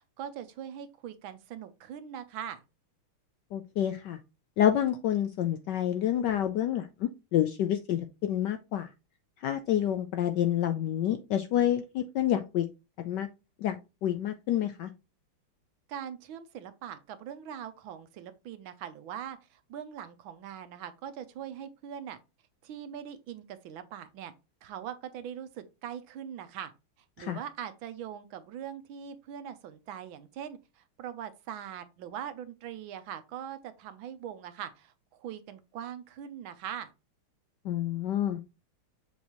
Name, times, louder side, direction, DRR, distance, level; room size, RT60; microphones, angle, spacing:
voice 1, 0.0-2.6 15.9-22.2 22.6-24.3 24.6-26.7 27.2-36.9, right 9 dB, 75° right, 1.4 m, -41 dB
voice 2, 3.5-4.2 4.6-8.9 9.4-12.6 13.0-13.3 13.6-14.9 27.2-27.4 37.6-38.4, left 11 dB, 75° left, 1.0 m, -28 dB
7.2 x 4.4 x 3.0 m
omnidirectional pair, 2.4 m